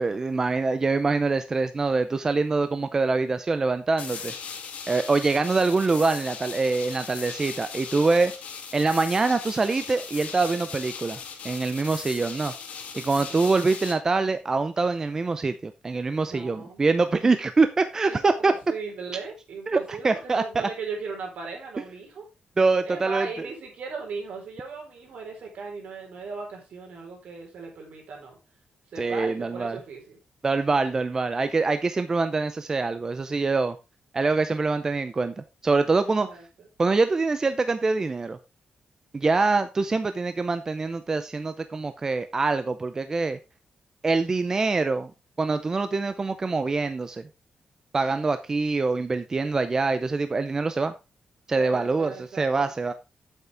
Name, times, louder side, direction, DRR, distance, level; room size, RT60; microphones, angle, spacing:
voice 1, 0.0-4.3 4.9-8.3 8.7-11.2 11.4-12.5 12.9-18.5 19.7-20.7 22.6-23.5 29.0-29.8 30.4-33.8 34.1-36.3 36.8-38.4 39.1-43.4 44.0-45.1 45.4-47.2 47.9-50.9 51.5-52.9, right 3 dB, 25° right, 10 dB, 0.5 m, -24 dB
sound 1, 4.0-13.9, left 6 dB, 70° left, 1.8 m, -38 dB
voice 2, 16.2-16.9 18.0-22.2 22.8-28.3 28.9-30.2 36.3-36.4 51.5-52.7, right 4 dB, 70° right, 1 dB, 4.0 m, -38 dB
8.2 x 8.1 x 3.4 m, 0.26 s
wide cardioid pair, 165°, 2 cm